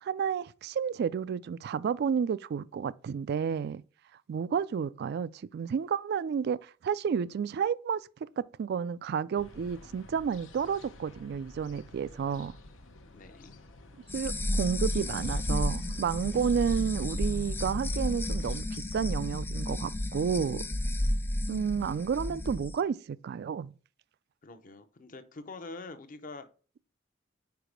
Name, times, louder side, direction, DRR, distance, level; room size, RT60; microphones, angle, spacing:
voice 1, 0.0-3.8 4.3-8.0 8.4-12.5 14.1-20.6 21.5-23.7, right 7 dB, 55° right, 0.3 m, -31 dB
sound 1, 9.3-18.6, left 1 dB, 85° left, 0.8 m, -50 dB
voice 2, 13.1-13.6 15.1-15.3 24.4-26.5, left 3 dB, 45° left, 0.7 m, -45 dB
sound 2, 14.1-22.7, left 1 dB, 10° left, 0.4 m, -32 dB
4.9 x 4.7 x 5.1 m
head